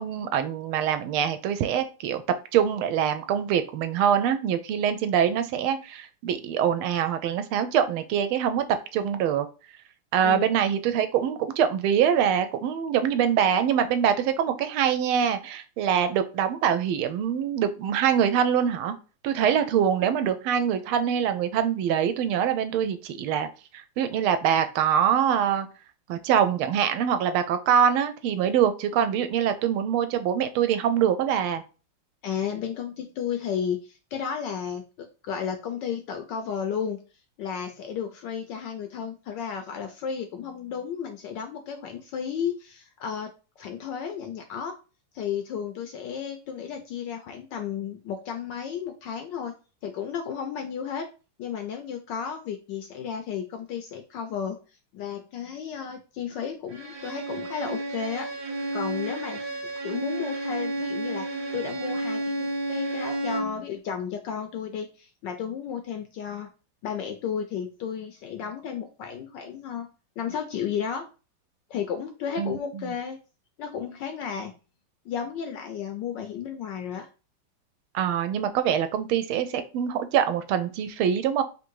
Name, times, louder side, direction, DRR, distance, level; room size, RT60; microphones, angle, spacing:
voice 1, 0.0-2.2 2.5-8.6 8.9-9.5 10.1-19.0 19.2-23.5 24.0-25.7 26.1-31.6 72.4-72.8 77.9-81.4, right 8 dB, 80° right, 10 dB, 1.4 m, -24 dB
voice 2, 32.2-37.0 37.4-43.3 43.6-44.7 45.1-49.5 49.8-51.1 51.4-54.6 54.9-58.3 58.7-59.4 59.8-61.3 61.5-66.5 66.8-69.9 70.2-71.0 71.7-73.2 73.6-74.5 75.1-77.1, left 7 dB, 75° left, 5 dB, 1.0 m, -33 dB
Bowed string instrument, 56.7-63.6, right 2 dB, 60° right, 1.3 m, -31 dB
3.7 x 2.6 x 4.5 m, 0.33 s
omnidirectional pair, 2.3 m